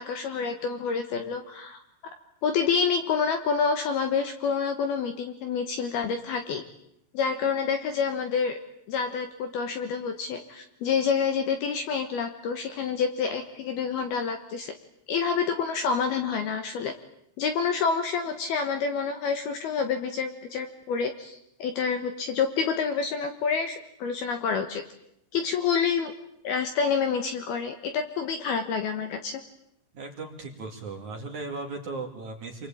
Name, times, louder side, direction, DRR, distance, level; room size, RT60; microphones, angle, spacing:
voice 1, 0.0-1.8 2.4-6.6 7.1-8.6 8.9-14.7 15.1-16.9 17.4-24.8 25.3-26.1 26.4-29.4, left 6 dB, 65° left, 6 dB, 2.7 m, -28 dB
voice 2, 29.9-32.7, right 3 dB, 45° right, 2 dB, 3.1 m, -37 dB
28.0 x 22.0 x 8.8 m, 0.78 s
omnidirectional pair, 5.9 m